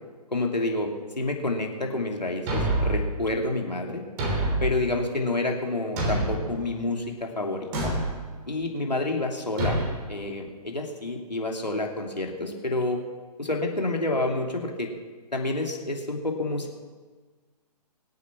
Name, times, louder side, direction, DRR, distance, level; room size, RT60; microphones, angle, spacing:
voice 1, 0.3-4.0 4.6-7.9 8.5-9.8 10.1-13.0 13.4-14.9 15.3-16.8, left 2 dB, 85° left, 1 dB, 2.9 m, -29 dB
Thump thud, 2.5-3.1 4.2-4.8 6.0-6.5 7.7-8.2 9.6-9.9, right 1 dB, 25° right, 3.2 m, -26 dB
23.5 x 8.5 x 6.1 m, 1.5 s
figure-of-eight pair, 135°, 21 cm